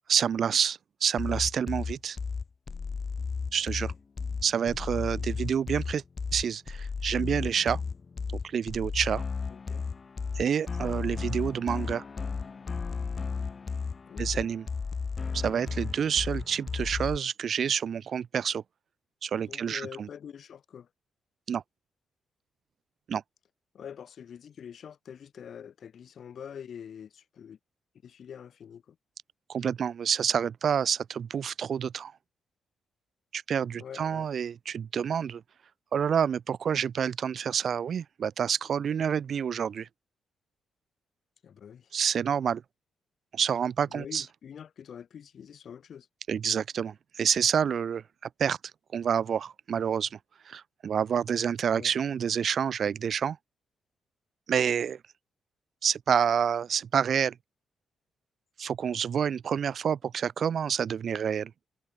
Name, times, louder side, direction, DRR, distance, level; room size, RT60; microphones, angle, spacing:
voice 1, 0.1-2.2 3.5-3.9 4.4-6.0 6.3-7.8 8.4-9.2 10.3-12.0 14.2-14.7 15.3-18.6 19.2-20.1 21.5-21.6 23.1-23.2 29.5-32.1 33.3-35.4 35.9-39.9 41.9-42.6 43.3-44.3 46.3-48.0 48.4-48.6 48.9-50.2 50.4-53.4 54.5-55.0 55.8-57.3 58.6-61.5, right 7 dB, 55° right, 0.9 m, -28 dB
sound 1, 1.2-17.2, left 5 dB, 35° left, 0.8 m, -34 dB
voice 2, 9.5-9.8 14.1-14.5 19.5-20.9 23.7-27.6 28.0-28.9 33.8-34.3 41.4-41.9 43.9-46.1 51.7-51.9, left 8 dB, 55° left, 6.5 m, -45 dB
cardioid pair, 120°, 0 cm